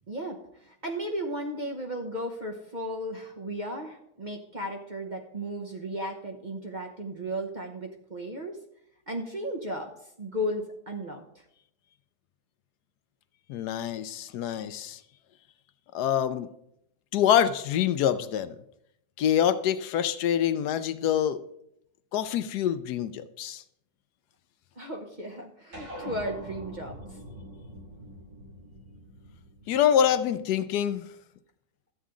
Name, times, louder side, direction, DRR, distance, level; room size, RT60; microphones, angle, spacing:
voice 1, 0.1-8.6 9.1-9.9 10.2-11.4 24.8-27.2, equal, 35° right, 2 dB, 0.9 m, -35 dB
voice 2, 13.5-15.0 15.9-16.5 17.1-18.5 19.2-21.4 22.1-23.6 29.7-31.1, left 9 dB, 80° left, 12 dB, 1.2 m, -25 dB
sound 1, 25.7-30.5, equal, 65° right, 5.5 m, -44 dB
12.5 x 8.2 x 3.8 m, 0.76 s
omnidirectional pair, 1.7 m